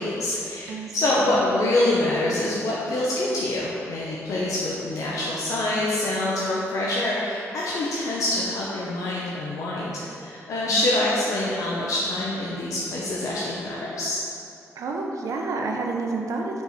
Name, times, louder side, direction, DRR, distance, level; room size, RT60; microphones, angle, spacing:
voice 1, 0.0-14.2, left 1 dB, 80° left, -5 dB, 0.8 m, -25 dB
voice 2, 14.8-16.6, right 3 dB, 80° right, 1 dB, 0.7 m, -29 dB
5.5 x 4.5 x 5.0 m, 2.6 s
wide cardioid pair, 110°, 6 cm